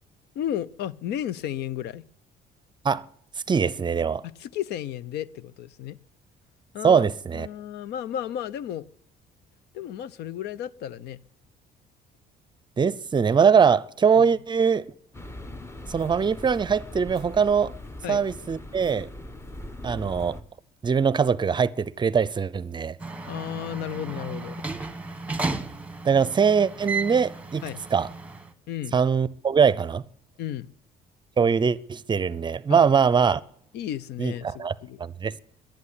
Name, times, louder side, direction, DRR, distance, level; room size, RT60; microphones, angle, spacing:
voice 1, 0.3-2.0 4.2-6.0 6.7-7.1 7.3-8.9 9.7-11.2 18.0-18.3 23.3-24.6 27.6-27.8 28.7-29.0 30.4-30.7 32.7-32.8 33.7-35.0, left 11 dB, 75° left, 0.7 m, -33 dB
voice 2, 3.5-4.2 6.8-7.5 12.8-14.9 15.9-17.7 18.1-19.1 19.8-20.4 20.8-22.9 26.0-27.6 27.9-28.1 28.9-30.0 31.4-33.4 34.2-34.7 35.0-35.4, right 6 dB, 25° right, 0.6 m, -22 dB
sound 1, 15.1-20.4, left 1 dB, 15° left, 1.1 m, -40 dB
sound 2, 23.0-28.5, right 3 dB, 5° right, 1.2 m, -34 dB
12.0 x 11.0 x 9.9 m
cardioid pair, 110°, 17 cm